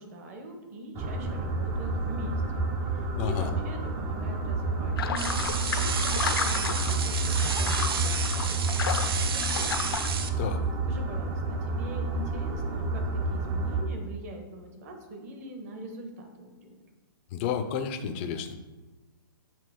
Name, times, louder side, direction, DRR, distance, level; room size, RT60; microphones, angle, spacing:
voice 1, 0.0-10.0 10.9-16.8, right 1 dB, 40° right, 4 dB, 1.2 m, -43 dB
sound 1, 0.9-13.8, right 2 dB, 20° right, 0.6 m, -30 dB
voice 2, 3.1-3.5 10.4-10.6 17.3-18.6, left 8 dB, 30° left, 8 dB, 0.5 m, -31 dB
sound 2, 5.0-10.1, left 6 dB, 75° left, 0.7 m, -33 dB
sound 3, 5.2-10.3, right 6 dB, 80° right, 0.7 m, -32 dB
7.6 x 3.0 x 5.0 m, 1.2 s
hypercardioid pair, 155°, 12 cm